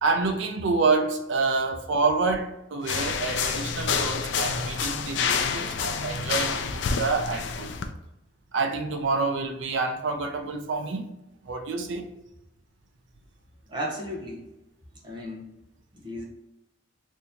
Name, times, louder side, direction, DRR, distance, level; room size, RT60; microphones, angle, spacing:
voice 1, 0.0-7.8 8.5-11.1 11.4-12.1, right 4 dB, 70° right, 0.5 m, -27 dB
sound 1, 2.8-7.9, left 6 dB, 65° left, 0.4 m, -28 dB
voice 2, 5.5-5.9 13.7-14.4 15.0-15.5 15.9-16.2, equal, 25° right, 0.8 m, -35 dB
2.8 x 2.6 x 3.5 m
head